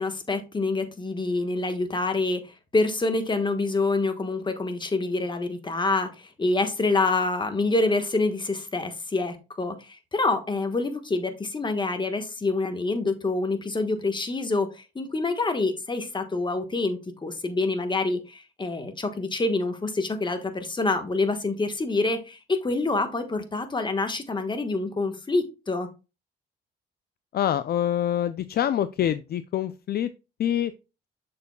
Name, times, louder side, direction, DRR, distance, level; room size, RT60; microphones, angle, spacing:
voice 1, 0.0-25.9, left 3 dB, 25° left, 7 dB, 1.3 m, -26 dB
voice 2, 27.3-30.1 30.4-30.7, left 10 dB, 50° left, 14 dB, 0.4 m, -25 dB
6.9 x 6.6 x 2.3 m, 0.29 s
cardioid pair, 90°, 20 cm